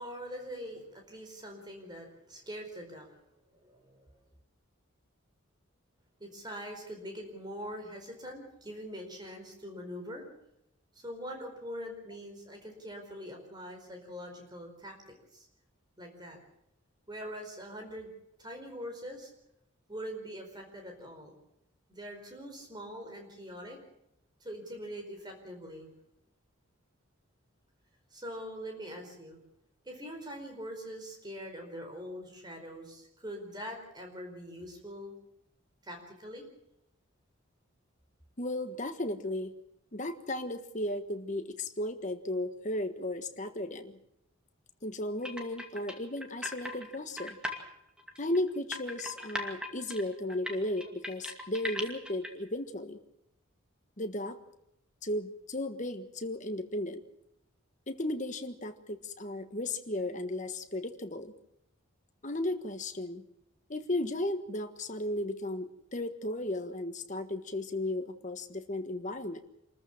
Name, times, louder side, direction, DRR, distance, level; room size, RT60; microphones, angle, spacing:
voice 1, 0.0-4.1 6.2-10.3 10.9-15.5 16.0-16.4 17.1-18.1 18.4-19.3 19.9-21.3 21.9-23.8 24.4-25.9 28.1-29.4 29.8-35.1 35.8-36.5, equal, 20° right, 3 dB, 4.7 m, -43 dB
voice 2, 38.4-39.5 39.9-44.0 44.8-47.4 48.2-53.0 54.0-54.4 55.0-57.0 57.9-61.3 62.2-63.2 63.7-69.4, left 1 dB, 35° left, 8 dB, 1.4 m, -35 dB
sound 1, 45.2-47.6 48.0-52.3, left 1 dB, 5° right, 2.3 m, -38 dB
27.0 x 14.0 x 7.3 m, 0.81 s
head